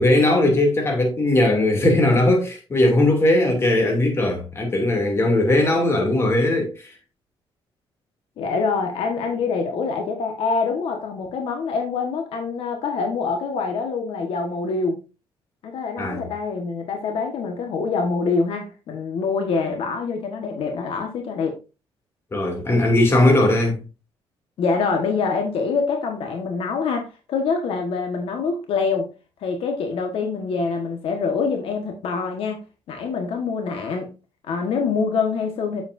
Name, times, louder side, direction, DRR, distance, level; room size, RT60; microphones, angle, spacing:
voice 1, 0.0-6.9 16.0-16.3 22.3-23.8, left 1 dB, 25° left, 2.7 m, -19 dB
voice 2, 8.4-15.0 15.6-21.6 24.6-29.1 29.4-32.6 32.9-34.1 34.5-35.8, left 4 dB, 70° left, 1.5 m, -25 dB
8.1 x 7.5 x 2.6 m
cardioid pair, 140°, 10 cm